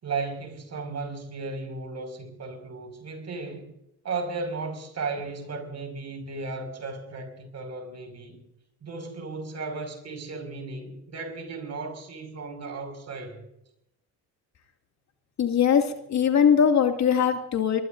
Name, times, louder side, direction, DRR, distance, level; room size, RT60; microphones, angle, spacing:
voice 1, 0.0-3.7 4.0-8.4 8.8-13.5, right 3 dB, 45° right, 5.8 m, -35 dB
voice 2, 15.4-17.8, left 7 dB, 45° left, 2.4 m, -21 dB
24.5 x 22.0 x 2.7 m
supercardioid pair, 70°, 37 cm